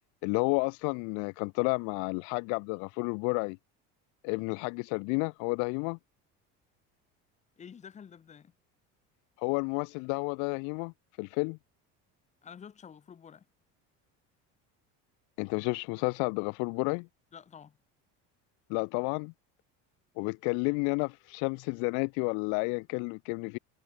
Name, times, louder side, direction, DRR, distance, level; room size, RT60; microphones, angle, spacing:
voice 1, 0.2-3.6 4.2-6.0 9.4-10.9 11.2-11.6 15.4-17.1 18.7-19.3 20.2-23.6, left 36 dB, 75° left, 0.9 m, -31 dB
voice 2, 7.6-8.5 12.4-13.5 17.3-17.8, left 7 dB, 25° left, 5.5 m, -49 dB
cardioid pair, 175°, 30 cm